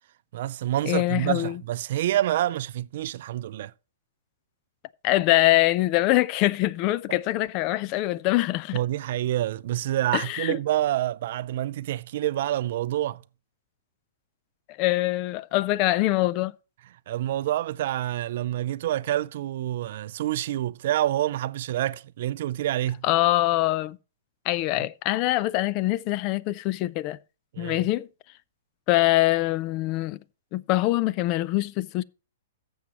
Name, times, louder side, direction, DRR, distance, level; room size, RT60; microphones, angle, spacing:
voice 1, 0.3-3.7 7.1-7.2 8.7-13.2 17.1-23.0 24.8-24.9 27.5-27.9, right 13 dB, 55° right, 0.4 m, -27 dB
voice 2, 0.9-1.5 5.0-8.8 10.1-10.6 14.8-16.5 23.0-24.0 24.5-27.2 27.6-28.1 28.9-30.2 30.5-32.0, left 17 dB, 35° left, 0.4 m, -24 dB
14.0 x 7.1 x 3.0 m
hypercardioid pair, 135°, 0 cm